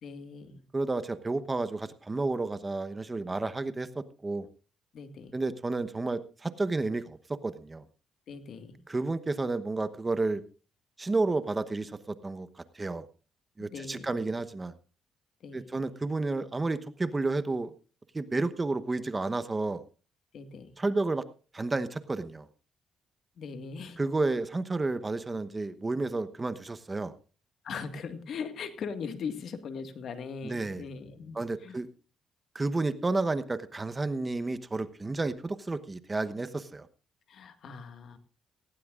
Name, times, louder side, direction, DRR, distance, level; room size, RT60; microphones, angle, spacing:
voice 1, 0.0-0.6 4.9-5.4 8.3-8.8 13.6-14.4 15.4-16.0 20.3-20.8 23.4-24.0 27.6-31.8 37.3-38.2, left 5 dB, 65° left, 9 dB, 1.8 m, -40 dB
voice 2, 0.7-4.5 5.3-7.8 8.9-10.4 11.0-13.1 13.6-14.7 15.5-17.7 18.1-19.8 20.8-21.2 21.5-22.5 24.0-27.1 30.4-30.8 31.3-31.9 32.5-36.9, right 3 dB, 20° right, 12 dB, 1.1 m, -31 dB
18.0 x 16.0 x 2.5 m, 0.35 s
cardioid pair, 90°, 0 cm